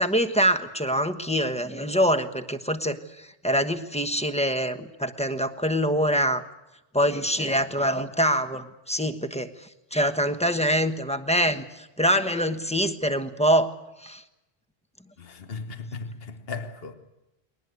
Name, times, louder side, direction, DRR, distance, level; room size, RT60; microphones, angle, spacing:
voice 1, 0.0-6.4 6.9-9.5 9.9-13.7 14.0-14.2, equal, 5° left, 1.1 m, -24 dB
voice 2, 15.2-16.9, left 4 dB, 70° left, 1.5 m, -36 dB
21.5 x 19.5 x 9.5 m
omnidirectional pair, 1.0 m